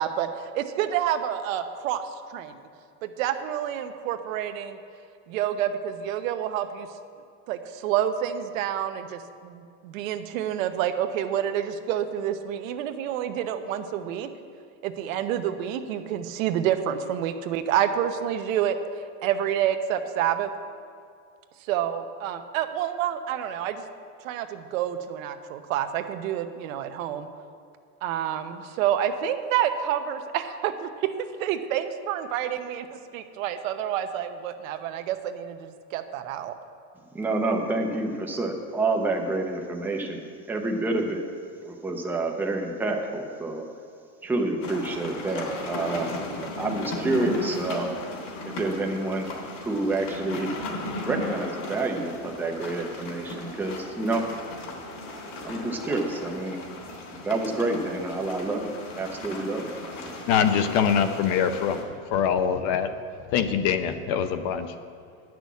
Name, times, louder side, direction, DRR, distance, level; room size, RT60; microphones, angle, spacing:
voice 1, 0.0-2.6 3.0-4.8 5.3-6.9 7.5-14.3 14.8-20.5 21.7-23.8 24.2-27.3 28.0-31.1 31.4-36.5, right 10 dB, 75° right, 8 dB, 0.9 m, -28 dB
voice 2, 37.1-40.2 40.5-41.2 41.6-43.6 44.2-46.1 46.6-47.9 48.6-49.3 49.6-50.5 51.1-54.2 55.4-56.6 57.2-59.7, right 2 dB, 5° right, 1 dB, 0.6 m, -28 dB
sound 1, 44.6-61.8, left 2 dB, 65° left, 3.3 m, -37 dB
voice 3, 60.3-62.9 63.3-64.8, left 7 dB, 45° left, 9 dB, 0.7 m, -24 dB
10.5 x 6.2 x 8.3 m, 2.3 s
supercardioid pair, 165°, 40 cm